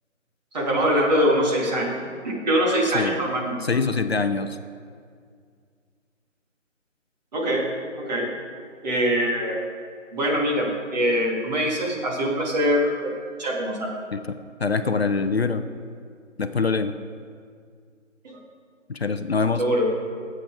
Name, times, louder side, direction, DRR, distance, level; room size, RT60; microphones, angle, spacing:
voice 1, 0.5-2.0 2.2-3.6 7.3-7.7 8.0-8.3 8.8-9.6 10.1-13.1 13.4-13.9 18.2-18.4 19.6-19.9, equal, 35° right, -2 dB, 2.5 m, -23 dB
voice 2, 3.6-4.6 14.1-15.6 16.4-16.9 18.9-19.6, left 4 dB, 55° left, 9 dB, 0.7 m, -24 dB
17.5 x 7.9 x 4.9 m, 2.1 s
figure-of-eight pair, 155°, 39 cm